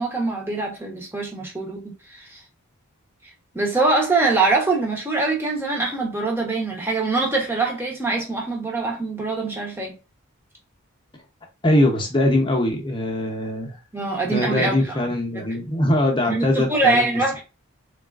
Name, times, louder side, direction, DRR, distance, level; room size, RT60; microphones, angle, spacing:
voice 1, 0.0-1.8 2.1-2.4 3.5-9.9 13.9-15.0 16.3-17.4, right 3 dB, 10° right, 0.8 m, -23 dB
voice 2, 11.6-13.8 14.3-17.1, left 1 dB, 20° left, 0.7 m, -22 dB
3.6 x 2.3 x 2.4 m
head